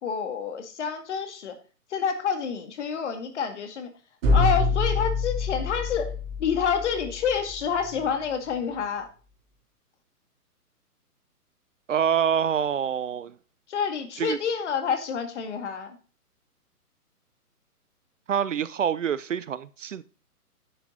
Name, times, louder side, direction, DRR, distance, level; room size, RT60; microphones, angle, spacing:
voice 1, 0.0-1.6 1.9-3.9 4.3-6.1 6.4-9.1 13.7-16.0, left 6 dB, 45° left, 2.1 m, -28 dB
sound 1, 4.2-8.1, left 3 dB, 35° right, 3.2 m, -26 dB
voice 2, 11.9-13.3 14.2-14.4 18.3-20.0, right 8 dB, 55° right, 0.6 m, -26 dB
10.0 x 7.2 x 3.8 m
figure-of-eight pair, 135°, 47 cm